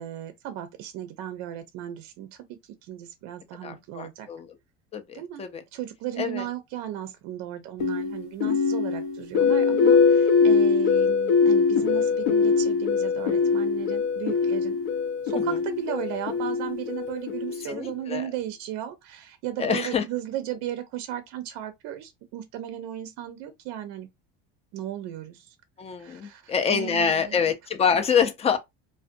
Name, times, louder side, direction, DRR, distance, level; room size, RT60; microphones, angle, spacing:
voice 1, 0.0-2.3 2.8-4.3 5.1-5.4 5.7-14.8 15.2-24.1 24.7-25.6 26.0-27.4, right 12 dB, 60° right, 0.5 m, -35 dB
voice 2, 3.6-4.5 4.9-5.6 6.2-6.5 13.2-13.3 15.3-15.6 17.6-18.3 19.6-20.0 25.8-28.6, left 7 dB, 20° left, 0.4 m, -26 dB
sound 1, 7.8-17.9, left 5 dB, 75° left, 0.7 m, -22 dB
2.5 x 2.1 x 2.5 m
supercardioid pair, 125°, 31 cm